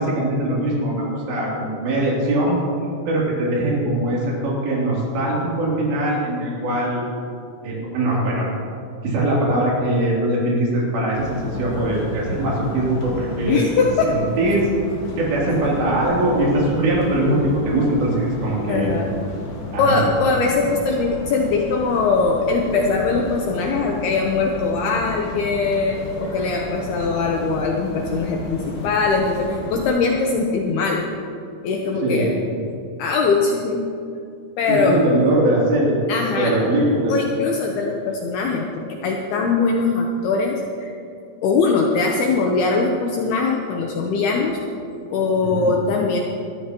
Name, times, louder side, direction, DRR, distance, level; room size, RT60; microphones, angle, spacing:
voice 1, 0.0-2.6 3.1-7.0 7.6-8.5 9.0-13.6 14.0-14.7 15.2-18.9 19.7-20.1 32.0-32.3 34.7-36.0 36.3-37.1 45.5-45.7, right 1 dB, 70° right, -5 dB, 5.2 m, -21 dB
sound 1, 11.1-29.9, left 1 dB, 55° left, 3.4 m, -33 dB
voice 2, 13.5-14.2 18.7-19.1 19.8-31.1 31.6-32.4 33.0-33.9 34.6-35.0 36.1-36.5 37.1-40.9 41.4-44.6 45.1-46.2, left 4 dB, 75° left, 0 dB, 2.5 m, -21 dB
20.5 x 13.0 x 3.0 m, 2.5 s
omnidirectional pair, 5.3 m